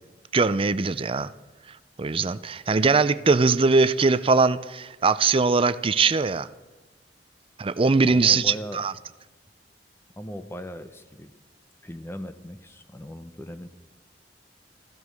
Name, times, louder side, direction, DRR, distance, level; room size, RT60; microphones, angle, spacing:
voice 1, 0.3-1.3 2.0-6.5 7.6-8.9, right 4 dB, 30° right, 0.5 m, -21 dB
voice 2, 8.1-8.8 10.2-11.3 11.8-13.7, equal, 15° left, 0.8 m, -38 dB
15.0 x 12.5 x 6.4 m
head